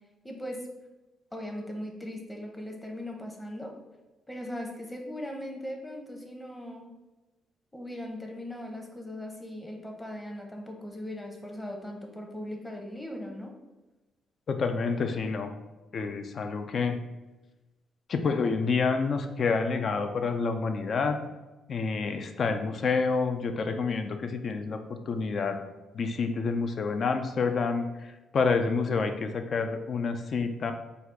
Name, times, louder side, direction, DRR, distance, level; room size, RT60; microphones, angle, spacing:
voice 1, 0.2-0.6 1.3-3.7 4.3-6.9 7.7-13.5, left 1 dB, 10° left, 1 dB, 0.8 m, -39 dB
voice 2, 14.5-15.5 15.9-17.0 18.1-21.2 21.7-24.8 25.1-25.7 25.9-30.7, left 4 dB, 50° left, 7 dB, 0.4 m, -28 dB
4.0 x 2.4 x 4.5 m, 1.1 s
cardioid pair, 90°, 0 cm